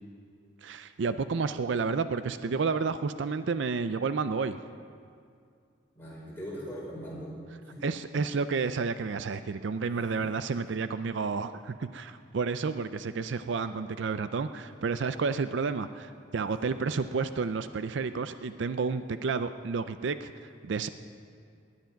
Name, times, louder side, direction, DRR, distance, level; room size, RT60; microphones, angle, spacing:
voice 1, 0.6-4.6 7.8-20.9, right 4 dB, 65° right, 11 dB, 0.4 m, -31 dB
voice 2, 5.9-7.3 7.6-7.8 9.9-10.2 16.6-16.8, equal, 10° left, -6 dB, 4.8 m, -41 dB
19.5 x 10.5 x 5.8 m, 2.3 s
head